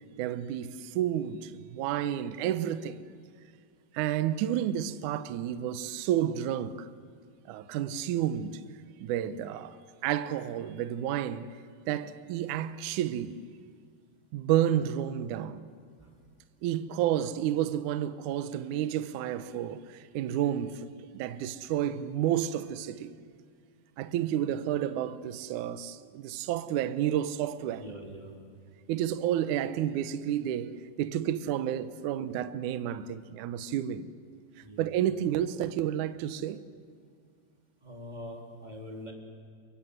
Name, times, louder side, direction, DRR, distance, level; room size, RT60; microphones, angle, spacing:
voice 1, 0.2-3.0 3.9-6.9 7.5-8.6 9.0-9.8 10.0-11.5 11.9-13.4 14.3-15.6 16.6-23.1 24.0-27.8 28.9-34.1 34.8-36.6, right 11 dB, 85° right, 1.7 m, -30 dB
voice 2, 27.7-28.4 34.6-34.9 37.8-39.1, equal, 10° right, 3.0 m, -43 dB
29.5 x 24.5 x 8.1 m
omnidirectional pair, 4.9 m